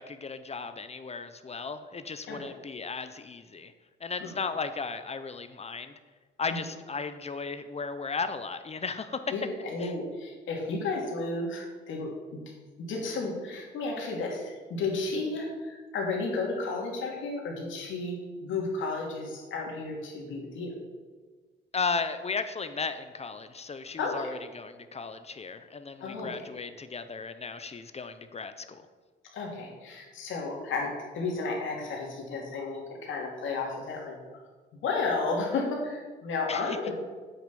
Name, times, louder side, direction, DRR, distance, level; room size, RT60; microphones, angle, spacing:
voice 1, 0.0-3.7 4.0-5.9 6.4-9.2 9.8-9.9 21.7-28.8 36.5-36.8, left 4 dB, 30° left, 10 dB, 0.8 m, -35 dB
voice 2, 9.3-12.4 12.8-20.8 24.0-24.3 26.0-26.5 29.3-34.2 34.7-36.9, left 3 dB, 75° left, -1 dB, 2.8 m, -33 dB
8.6 x 6.2 x 7.0 m, 1.4 s
cardioid pair, 90°, 20 cm